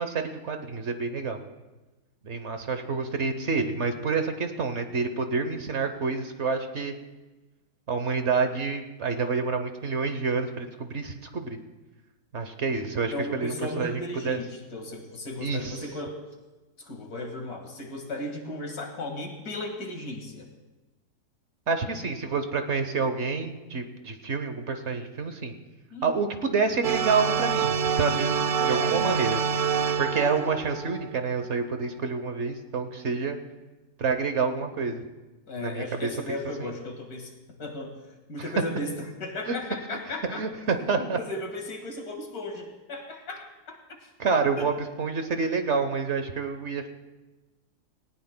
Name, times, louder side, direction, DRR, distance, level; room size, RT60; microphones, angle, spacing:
voice 1, 0.0-1.4 2.2-6.9 7.9-11.6 12.3-14.4 15.4-15.8 21.7-25.5 26.0-28.3 28.7-29.4 30.0-33.4 34.0-35.0 35.6-36.7 39.5-39.6 40.3-41.2 44.2-46.9, right 4 dB, 50° right, 7 dB, 1.1 m, -28 dB
voice 2, 13.1-16.2 16.8-20.4 25.9-26.1 28.6-29.2 35.5-37.3 37.6-37.9 38.3-40.4 41.0-43.8 44.0-44.1 44.6-44.7, left 2 dB, 75° left, 3 dB, 2.4 m, -36 dB
sound 1, 26.8-31.3, right 7 dB, 80° right, 0.4 m, -27 dB
19.0 x 18.5 x 2.2 m, 1.1 s
omnidirectional pair, 1.6 m